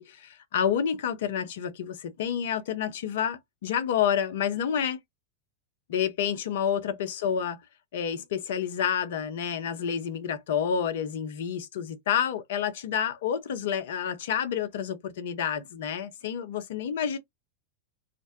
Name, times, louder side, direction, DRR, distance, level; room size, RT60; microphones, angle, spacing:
voice 1, 0.0-5.0 5.9-7.6 7.9-17.2, left 8 dB, 55° left, 0.6 m, -29 dB
2.5 x 2.0 x 2.7 m
figure-of-eight pair, 90°, 0 cm